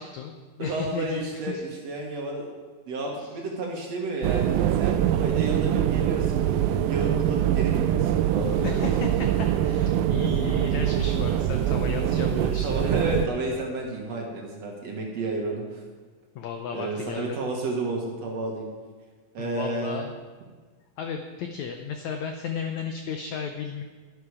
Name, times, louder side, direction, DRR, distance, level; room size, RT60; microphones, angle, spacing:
voice 1, 0.0-1.6 3.2-3.3 8.6-12.7 16.3-17.4 19.4-20.2 21.0-23.8, left 6 dB, 85° left, 5 dB, 1.6 m, -34 dB
voice 2, 0.6-2.5 2.9-6.4 6.8-8.9 11.7-15.8 16.7-18.7 19.3-20.0, right 2 dB, 55° right, 0 dB, 2.2 m, -31 dB
sound 1, 4.2-13.3, right 11 dB, 85° right, 2.3 m, -24 dB
11.5 x 11.0 x 4.8 m, 1.4 s
omnidirectional pair, 4.2 m